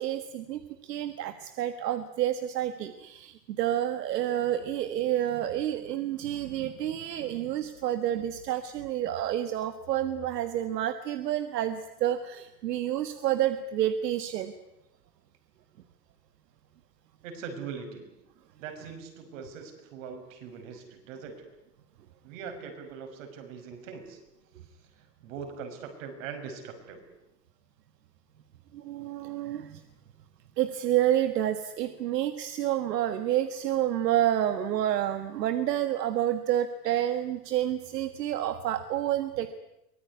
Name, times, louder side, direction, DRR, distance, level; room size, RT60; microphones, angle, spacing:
voice 1, 0.0-14.5 28.7-29.8 30.6-39.5, right 11 dB, 75° right, 10 dB, 1.7 m, -29 dB
voice 2, 17.2-18.1 18.6-21.4 22.2-24.2 24.9-27.0, right 6 dB, 50° right, 5 dB, 5.8 m, -41 dB
24.0 x 18.5 x 9.6 m, 0.91 s
supercardioid pair, 160°, 49 cm